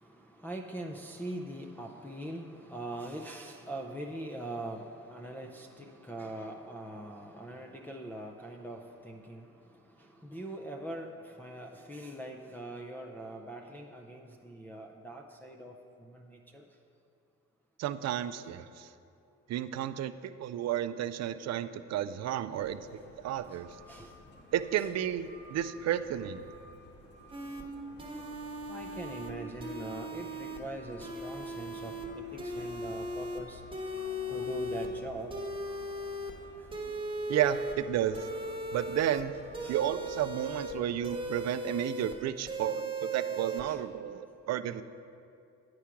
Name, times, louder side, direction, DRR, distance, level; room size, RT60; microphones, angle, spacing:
voice 1, 0.0-9.5 10.0-15.7 16.0-16.6 23.9-24.1 24.8-24.9 28.7-33.6 34.3-35.3 39.6-39.8 43.7-43.8, right 1 dB, 5° left, 0 dB, 0.5 m, -42 dB
voice 2, 17.8-18.9 19.5-23.7 24.5-26.4 37.3-38.2 38.7-39.3 39.7-44.8, right 11 dB, 60° right, 13 dB, 0.4 m, -32 dB
sound 1, 22.5-41.3, left 1 dB, 35° left, 1.3 m, -53 dB
sound 2, 27.3-27.6 28.0-29.3 29.6-30.6 31.0-32.1 32.4-33.4 33.7-34.9 35.3-36.3 36.7-37.7 38.1-39.2 39.5-40.7 41.0-42.1 42.5-43.6, equal, 15° right, 1.1 m, -38 dB
8.9 x 4.8 x 5.8 m, 2.5 s
cardioid pair, 90°, 30 cm